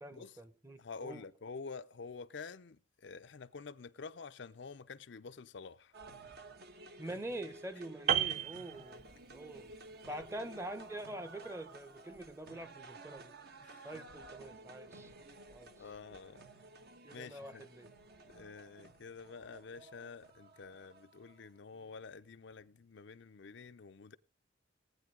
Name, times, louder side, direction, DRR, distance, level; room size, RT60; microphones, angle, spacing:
voice 1, 0.0-1.2 7.0-9.0 9.3-9.7 10.1-13.3 13.8-15.1 15.5-15.8 17.0-17.9, right 1 dB, 15° right, 0.8 m, -45 dB
voice 2, 0.8-5.9 8.3-8.4 13.6-13.9 15.7-16.4 17.1-17.7 18.3-24.2, left 4 dB, 65° left, 0.6 m, -49 dB
sound 1, 5.9-22.0, right 2 dB, 55° right, 1.2 m, -54 dB
Piano, 8.1-9.5 9.8-10.0, right 10 dB, 40° right, 0.6 m, -33 dB
18.0 x 9.4 x 3.8 m
head